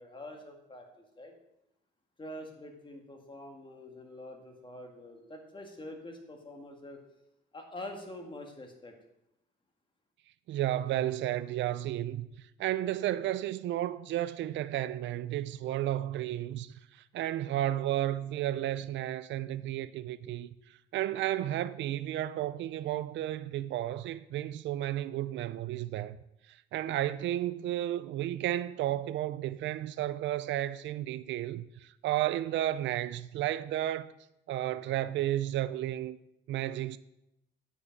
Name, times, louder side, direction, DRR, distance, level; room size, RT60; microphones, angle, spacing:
voice 1, 0.0-1.3 2.2-7.0 7.5-9.0, left 1 dB, 25° left, 1.8 m, -45 dB
voice 2, 10.5-12.3 12.6-20.5 20.9-26.2 26.5-34.1 34.5-36.2 36.5-37.0, right 13 dB, 70° right, 0.4 m, -32 dB
8.2 x 5.7 x 5.2 m
cardioid pair, 90°, 20 cm